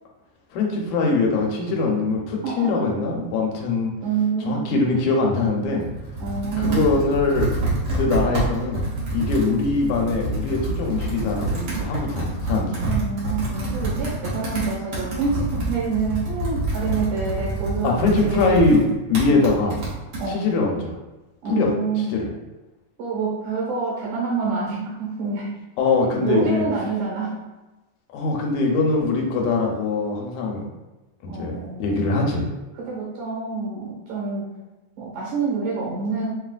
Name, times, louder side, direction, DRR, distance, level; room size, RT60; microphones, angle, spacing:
voice 1, 0.5-3.9 4.5-5.8 6.6-7.5 7.9-8.9 9.1-12.8 17.8-18.8 19.1-19.8 20.3-20.9 21.5-21.7 22.1-22.3 25.8-26.7 28.1-30.7 31.2-32.4, left 3 dB, 85° left, 0 dB, 2.1 m, -22 dB
voice 2, 2.4-2.8 4.0-4.8 6.2-6.9 12.8-18.7 20.2-20.5 21.4-22.2 23.0-25.5 26.2-27.4 28.5-28.6 31.3-32.2 32.7-34.5 35.0-36.3, right 4 dB, 85° right, -4 dB, 2.7 m, -27 dB
Computer keyboard, 5.7-20.3, right 2 dB, 65° right, 1.0 m, -27 dB
6.1 x 2.4 x 2.4 m, 1.1 s
omnidirectional pair, 3.4 m